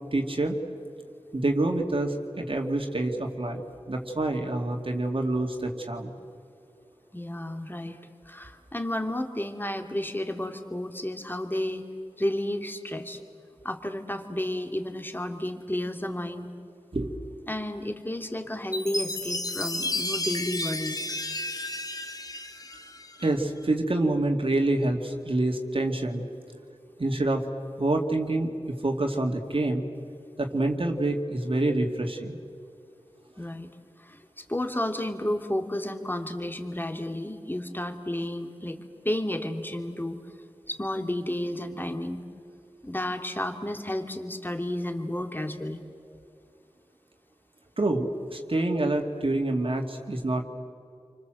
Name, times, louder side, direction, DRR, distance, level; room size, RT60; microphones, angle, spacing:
voice 1, 0.1-0.6 1.3-6.1 16.9-17.2 23.2-26.2 27.0-27.5 27.8-29.8 30.4-32.4 47.8-50.4, right 2 dB, 55° right, 2 dB, 2.5 m, -27 dB
voice 2, 7.1-8.0 8.3-11.8 12.2-13.2 13.6-16.5 17.5-21.1 33.4-33.7 34.0-38.8 39.0-40.2 40.7-42.2 42.8-45.8, left 1 dB, 20° left, 5 dB, 2.8 m, -32 dB
Chime, 18.7-23.3, left 2 dB, 35° left, 2.5 m, -32 dB
29.5 x 25.0 x 7.8 m, 2.5 s
wide cardioid pair, 45°, 11 cm